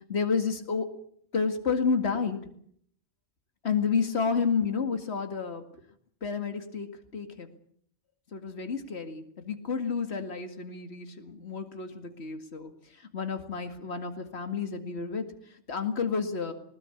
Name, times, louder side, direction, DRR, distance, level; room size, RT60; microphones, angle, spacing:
voice 1, 0.1-0.9 1.3-2.4 3.6-5.6 6.2-7.5 8.3-12.7 13.1-15.3 15.7-16.5, left 5 dB, 65° left, 7 dB, 2.4 m, -30 dB
20.5 x 20.0 x 8.5 m, 0.64 s
omnidirectional pair, 1.2 m